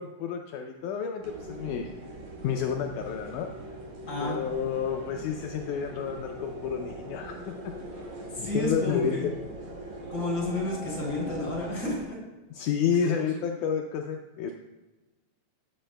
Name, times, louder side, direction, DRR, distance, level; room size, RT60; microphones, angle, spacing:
voice 1, 0.0-1.9 2.4-3.5 4.2-7.6 8.4-9.3 12.5-14.5, left 7 dB, 85° left, 4 dB, 1.8 m, -30 dB
sound 1, 1.2-12.0, right 2 dB, 85° right, 1.0 m, -41 dB
voice 2, 4.1-4.4 8.3-9.3 10.1-12.2, left 2 dB, 35° left, -4 dB, 3.6 m, -31 dB
15.0 x 8.4 x 2.2 m, 1.1 s
omnidirectional pair, 4.1 m